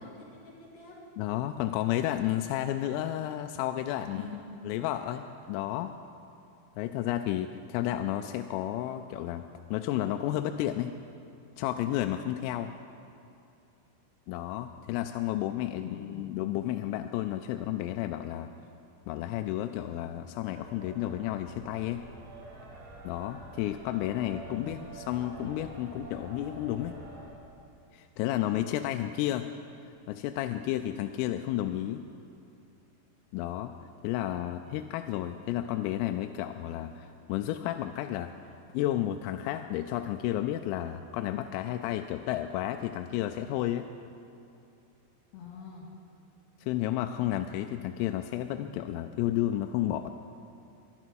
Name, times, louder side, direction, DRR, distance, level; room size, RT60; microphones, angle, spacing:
voice 1, 0.0-1.0 4.1-4.4 15.8-16.3 24.5-24.9 34.4-34.7 45.3-45.9, left 6 dB, 55° left, -3 dB, 3.1 m, -45 dB
voice 2, 1.2-4.3 4.7-5.9 6.8-9.4 9.7-10.9 11.6-12.7 14.3-18.5 19.1-22.0 23.0-27.0 27.9-29.5 30.1-32.0 33.3-33.7 34.0-38.3 38.7-43.9 46.6-50.1, left 13 dB, 85° left, 7 dB, 3.2 m, -32 dB
sound 1, 20.5-27.3, right 2 dB, 80° right, 5.2 m, -47 dB
23.0 x 11.5 x 4.6 m, 2.6 s
omnidirectional pair, 5.9 m